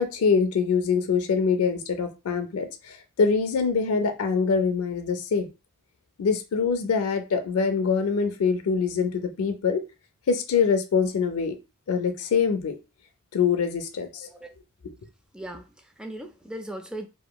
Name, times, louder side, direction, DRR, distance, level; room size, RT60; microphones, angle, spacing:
voice 1, 0.0-5.5 6.2-9.8 10.3-11.6 11.9-12.7 13.3-14.3, left 5 dB, 90° left, 0.4 m, -24 dB
voice 2, 15.3-17.1, right 1 dB, 5° right, 0.3 m, -38 dB
2.8 x 2.5 x 2.2 m
head